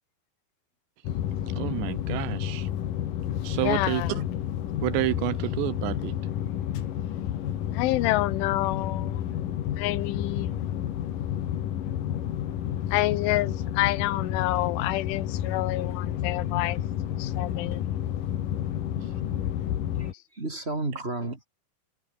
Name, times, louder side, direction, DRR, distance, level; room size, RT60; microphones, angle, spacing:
sound 1, 1.0-20.1, left 11 dB, 60° left, 2.8 m, -30 dB
voice 1, 1.6-2.7 3.4-4.0 4.8-6.1 19.0-19.1, right 20 dB, 80° right, 2.6 m, -29 dB
voice 2, 3.6-4.2 7.7-9.3 9.8-10.7 12.9-16.8 17.1-18.0, left 17 dB, 90° left, 3.5 m, -28 dB
voice 3, 20.0-21.5, right 2 dB, 15° right, 2.4 m, -32 dB
omnidirectional pair, 5.4 m